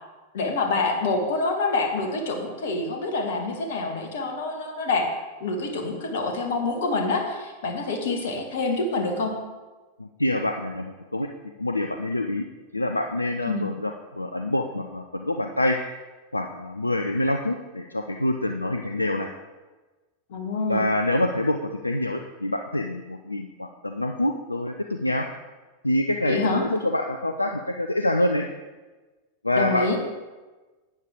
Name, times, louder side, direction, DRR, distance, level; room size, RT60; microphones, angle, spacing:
voice 1, 0.3-5.1 5.4-9.3 13.5-13.6 20.3-20.9 26.3-26.6 29.5-30.0, left 3 dB, 60° left, 3 dB, 1.7 m, -26 dB
voice 2, 10.0-11.3 11.6-12.5 12.7-15.8 16.3-19.3 20.7-25.3 25.8-28.5 29.4-30.0, left 1 dB, 85° left, 5 dB, 0.5 m, -26 dB
12.0 x 9.1 x 3.7 m, 1.2 s
figure-of-eight pair, 90°, 0 cm